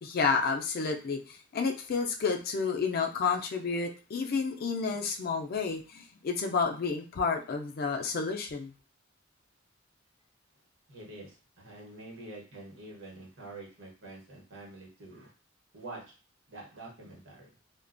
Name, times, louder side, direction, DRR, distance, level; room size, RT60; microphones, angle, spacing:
voice 1, 0.0-8.7, left 5 dB, 50° left, 3 dB, 0.4 m, -30 dB
voice 2, 10.9-15.3 15.7-16.2 16.5-17.5, right 2 dB, 70° right, -2 dB, 0.9 m, -46 dB
2.3 x 2.1 x 2.5 m, 0.34 s
head